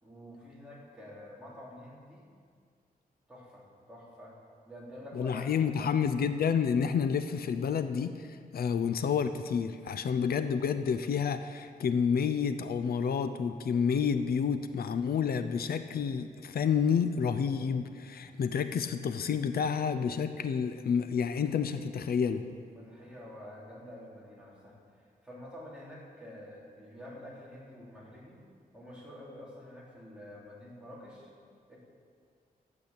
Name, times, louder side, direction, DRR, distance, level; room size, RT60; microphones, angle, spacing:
voice 1, 0.0-2.2 3.3-4.3 4.7-6.0 22.7-28.4 28.7-31.3 31.7-31.8, left 1 dB, 5° right, -6 dB, 3.3 m, -48 dB
voice 2, 5.1-22.5, left 6 dB, 80° left, 10 dB, 0.6 m, -29 dB
12.0 x 8.3 x 8.7 m, 2.1 s
wide cardioid pair, 165°, 16 cm